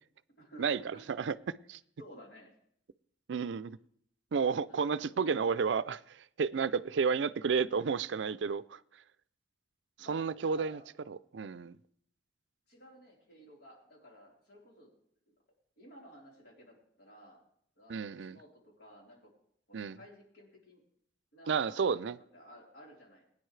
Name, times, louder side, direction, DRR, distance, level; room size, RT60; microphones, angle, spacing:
voice 1, 0.4-1.0 2.0-2.5 4.6-5.4 10.0-10.9 12.7-14.9 15.8-17.4 17.8-19.3 19.7-20.8 21.3-22.0 22.3-23.3, equal, 65° left, 4.0 m, -55 dB
voice 2, 1.1-1.8 3.3-3.8 4.3-6.0 6.4-8.8 10.1-10.8 11.1-11.8 17.9-18.4 19.7-20.0 21.5-22.2, right 5 dB, 80° right, 0.4 m, -31 dB
21.0 x 9.7 x 3.2 m
head